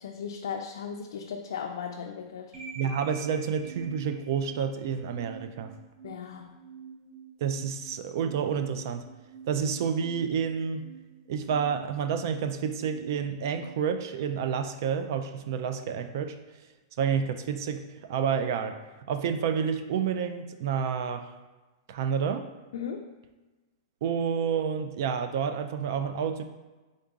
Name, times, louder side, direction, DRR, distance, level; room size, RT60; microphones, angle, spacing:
voice 1, 0.0-2.6 6.0-6.6 22.7-23.1, left 7 dB, 75° left, 2 dB, 0.4 m, -37 dB
sound 1, 2.5-14.6, right 5 dB, 25° right, 1.1 m, -47 dB
voice 2, 2.8-5.7 7.4-9.0 9.5-10.8 11.3-16.4 17.0-18.8 19.1-21.3 21.9-22.5 24.0-26.4, right 7 dB, 50° right, 8 dB, 0.3 m, -29 dB
3.9 x 3.7 x 3.6 m, 1.2 s
supercardioid pair, 165°, 2 cm